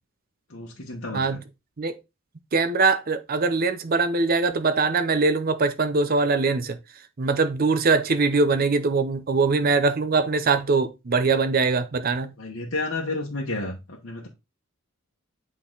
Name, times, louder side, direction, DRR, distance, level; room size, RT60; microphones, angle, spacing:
voice 1, 0.5-1.4 12.4-14.3, left 2 dB, 60° left, 1.2 m, -31 dB
voice 2, 2.5-6.8 7.2-12.3, right 4 dB, 40° right, 0.6 m, -22 dB
8.4 x 3.9 x 3.8 m
head